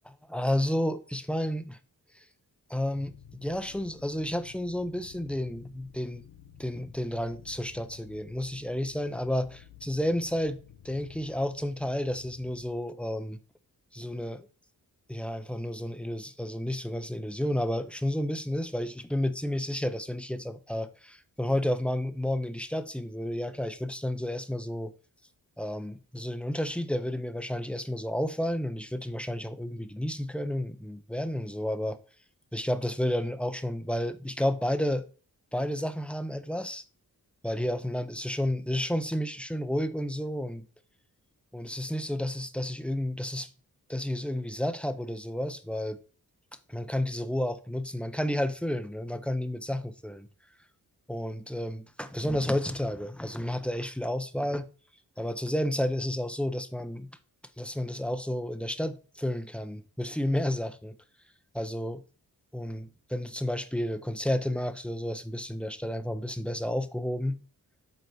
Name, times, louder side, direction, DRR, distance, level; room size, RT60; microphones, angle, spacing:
voice 1, 0.1-1.8 2.2-2.3 2.7-6.2 6.6-13.4 13.9-14.5 15.1-24.9 25.6-32.0 32.5-35.1 35.5-36.8 37.4-40.7 41.5-43.5 43.9-46.0 46.7-50.3 51.1-54.7 55.2-57.1 57.6-61.0 61.5-62.0 62.5-67.4, left 1 dB, 5° left, 0.7 m, -31 dB
sound 1, 2.9-12.7, left 9 dB, 80° left, 0.9 m, -53 dB
7.9 x 4.1 x 4.6 m
wide cardioid pair, 90°, 36 cm